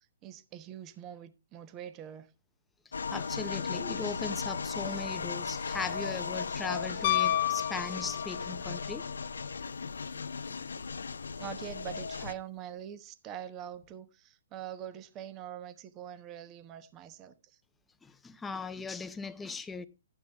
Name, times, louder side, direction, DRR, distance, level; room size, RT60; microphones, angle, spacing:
voice 1, 0.2-2.3 11.4-17.6, right 10 dB, 25° right, 1.0 m, -44 dB
sound 1, 2.9-12.3, left 5 dB, 90° left, 0.9 m, -36 dB
voice 2, 3.1-9.1 18.0-19.9, left 4 dB, 10° left, 0.7 m, -38 dB
Piano, 7.0-8.6 11.0-11.1, left 15 dB, 45° left, 0.4 m, -30 dB
12.0 x 9.3 x 3.5 m
hypercardioid pair, 145°, 0 cm